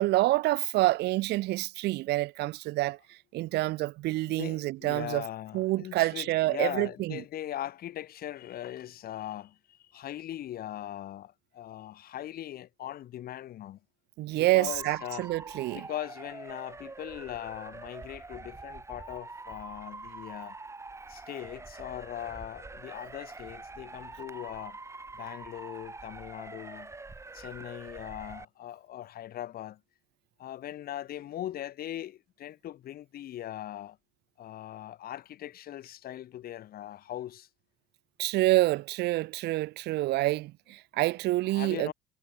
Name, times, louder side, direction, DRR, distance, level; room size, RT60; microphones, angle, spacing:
voice 1, 0.0-3.0 3.3-5.2 5.5-7.2 14.2-15.9 38.2-41.9, right 18 dB, 80° right, 1.0 m, -27 dB
voice 2, 4.3-13.8 14.4-15.3 15.7-20.6 21.1-24.8 25.1-26.9 27.3-29.8 30.4-34.0 34.4-37.5 41.5-41.9, left 12 dB, 65° left, 3.1 m, -40 dB
Motor vehicle (road) / Siren, 14.7-28.4, right 3 dB, 15° right, 2.0 m, -45 dB
cardioid pair, 110°, 17 cm